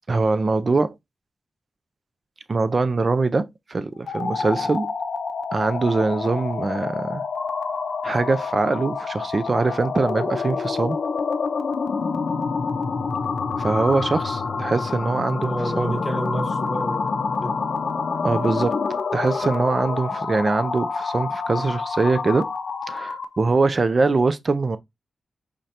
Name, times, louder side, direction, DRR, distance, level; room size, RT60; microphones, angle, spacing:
voice 1, 0.1-0.9 2.5-4.9 5.5-7.2 8.0-11.0 13.6-16.0 18.2-18.8 19.1-22.5 22.9-24.8, right 3 dB, 40° right, 0.4 m, -23 dB
sound 1, 4.0-23.4, left 4 dB, 65° left, 0.5 m, -27 dB
voice 2, 15.4-17.6, right 1 dB, 5° right, 0.9 m, -29 dB
5.0 x 3.2 x 2.8 m
wide cardioid pair, 115°, 0 cm